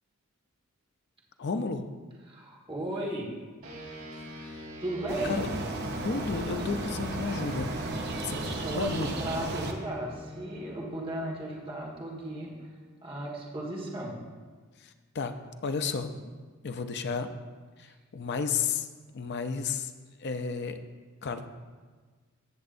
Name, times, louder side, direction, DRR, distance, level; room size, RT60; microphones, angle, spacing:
voice 1, 1.4-1.8 4.4-4.5 5.2-5.5 6.0-7.8 8.2-8.4 8.8-9.3 14.8-15.3 15.6-16.1 16.6-17.3 17.8-19.9 20.2-20.8 21.2-21.5, left 5 dB, 55° left, 7 dB, 0.5 m, -32 dB
voice 2, 2.2-3.3 4.8-5.4 8.3-12.6 13.0-14.2 17.8-17.9, right 1 dB, 25° right, -3 dB, 1.6 m, -35 dB
sound 1, 3.6-13.4, left 1 dB, 70° right, 2.8 m, -44 dB
sound 2, 5.1-9.7, right 2 dB, 50° right, 0.9 m, -34 dB
16.0 x 6.5 x 2.6 m, 1.4 s
head